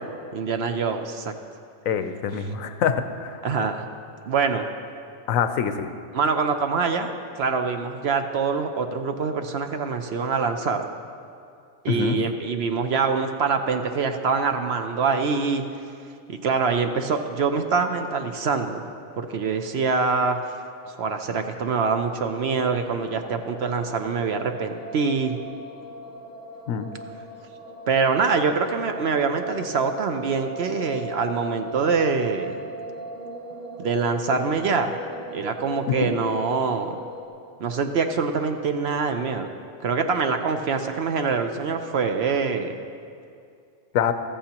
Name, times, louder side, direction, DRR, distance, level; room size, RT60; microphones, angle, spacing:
voice 1, 0.3-1.3 3.4-3.8 4.3-4.7 6.1-10.9 11.8-15.6 16.3-18.8 19.2-20.4 21.0-25.4 27.9-32.6 33.8-35.0 35.3-37.0 37.6-39.5 39.8-42.8, right 5 dB, 60° right, 6 dB, 0.8 m, -24 dB
voice 2, 1.9-3.4 5.3-5.9 11.9-12.2 26.7-26.9 36.0-36.1 43.9-44.1, left 7 dB, 85° left, 9 dB, 1.1 m, -25 dB
sound 1, 22.2-37.3, equal, 30° right, 1.9 m, -38 dB
14.0 x 14.0 x 2.9 m, 2.4 s
omnidirectional pair, 1.4 m